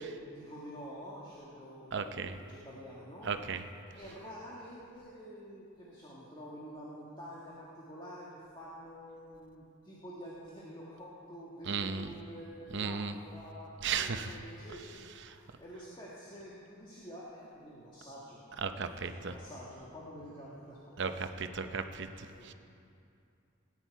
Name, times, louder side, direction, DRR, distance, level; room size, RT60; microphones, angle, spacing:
voice 1, 0.0-3.3 3.9-8.3 8.5-13.7 14.0-18.7 19.1-20.8 21.6-22.1 22.3-22.5, equal, 25° left, -6 dB, 1.6 m, -48 dB
voice 2, 1.9-2.4 3.2-3.6 11.7-12.1 12.7-13.1 13.8-14.3 15.3-15.4 18.6-19.3 21.0-22.5, right 5 dB, 60° right, 8 dB, 0.7 m, -35 dB
18.0 x 10.0 x 4.6 m, 2.5 s
head